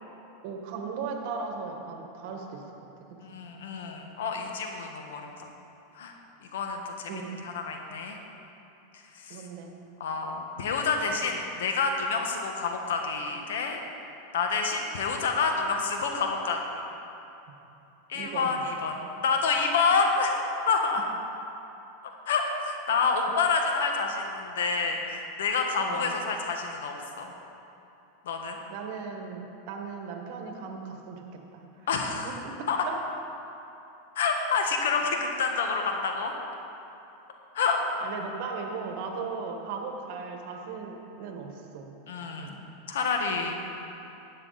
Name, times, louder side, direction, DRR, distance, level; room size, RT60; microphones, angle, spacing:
voice 1, 0.4-3.4 7.1-7.4 9.3-9.7 18.1-18.6 25.8-26.1 28.7-31.7 32.2-32.5 32.9-33.0 38.0-41.9 42.4-42.6 43.4-43.5, right 5 dB, 60° right, 3 dB, 1.6 m, -37 dB
voice 2, 3.2-5.5 5.9-7.1 7.4-8.2 9.1-9.4 10.0-13.8 14.3-16.8 18.1-18.9 19.2-20.4 20.7-21.0 22.3-27.3 28.2-28.6 31.9-32.4 32.7-32.8 34.1-36.3 37.5-37.9 42.1-42.6 42.9-43.5, left 4 dB, 80° left, 3 dB, 1.4 m, -28 dB
12.0 x 8.9 x 4.1 m, 2.9 s
hypercardioid pair, 120°, 0 cm